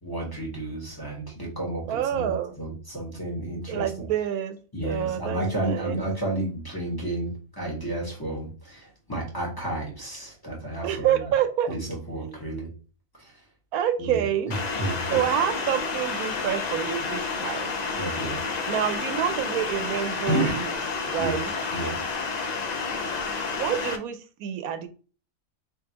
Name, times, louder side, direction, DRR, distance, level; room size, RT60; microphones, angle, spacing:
voice 1, 0.0-2.3 2.6-4.1 4.7-11.2 11.7-12.7 13.2-13.3 14.0-15.2 17.9-18.4 20.3-20.6 21.2-21.4 21.7-22.0, right 1 dB, 15° left, -2 dB, 1.1 m, -31 dB
voice 2, 1.9-2.5 3.7-6.0 10.8-11.8 12.2-12.4 13.7-14.5 15.1-17.8 18.7-20.7 21.0-21.5 23.6-24.9, right 10 dB, 90° right, 10 dB, 1.1 m, -27 dB
sound 1, 14.5-24.0, left 4 dB, 75° left, 0.3 m, -30 dB
4.0 x 3.5 x 2.8 m, 0.38 s
omnidirectional pair, 1.5 m